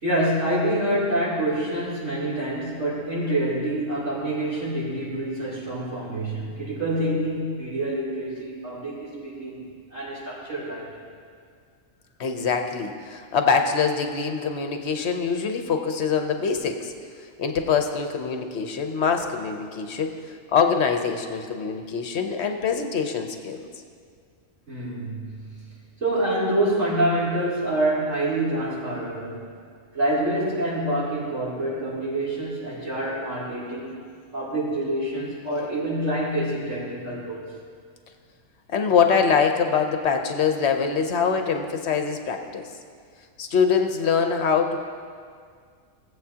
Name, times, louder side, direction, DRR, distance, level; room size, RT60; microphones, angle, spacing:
voice 1, 0.0-9.6 9.9-11.0 24.7-25.4 26.0-29.5 29.9-34.0 34.3-37.5, right 1 dB, 60° right, -9 dB, 3.5 m, -26 dB
voice 2, 12.2-16.9 17.4-23.7 38.7-42.7 43.4-44.8, left 6 dB, 60° left, 5 dB, 1.0 m, -24 dB
17.5 x 7.9 x 2.8 m, 2.1 s
omnidirectional pair, 1.4 m